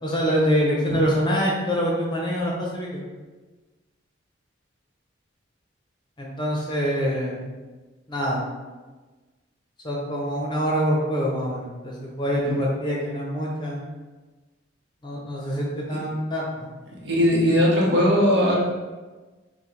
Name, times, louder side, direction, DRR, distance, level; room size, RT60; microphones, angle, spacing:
voice 1, 0.0-3.0 6.2-7.5 8.1-8.4 9.8-13.8 15.0-16.7, equal, 25° left, -3 dB, 0.7 m, -25 dB
voice 2, 17.0-18.5, equal, 60° right, -4 dB, 1.0 m, -19 dB
5.9 x 2.2 x 3.2 m, 1.3 s
head